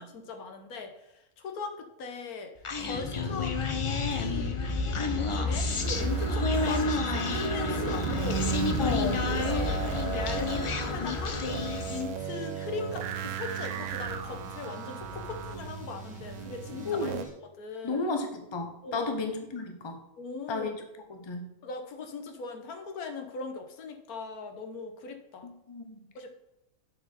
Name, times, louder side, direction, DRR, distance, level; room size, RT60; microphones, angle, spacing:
voice 1, 0.0-2.5 2.8-3.6 3.9-4.5 5.3-8.5 9.3-11.4 11.8-17.1 17.4-18.0 18.8-19.1 20.2-20.7 21.6-25.5 26.1-26.3, left 4 dB, 85° left, 6 dB, 1.5 m, -40 dB
Human voice, 2.6-12.1, left 3 dB, 50° left, 0.4 m, -30 dB
sound 1, 5.7-17.2, right 9 dB, 80° right, 1.1 m, -36 dB
sound 2, 8.1-17.3, left 1 dB, 5° right, 1.3 m, -47 dB
voice 2, 8.8-9.3 16.9-17.3 17.8-20.0 20.5-20.8 21.1-21.5 25.4-26.1, left 3 dB, 25° left, 5 dB, 0.7 m, -33 dB
7.0 x 4.8 x 5.4 m, 0.88 s
omnidirectional pair, 1.5 m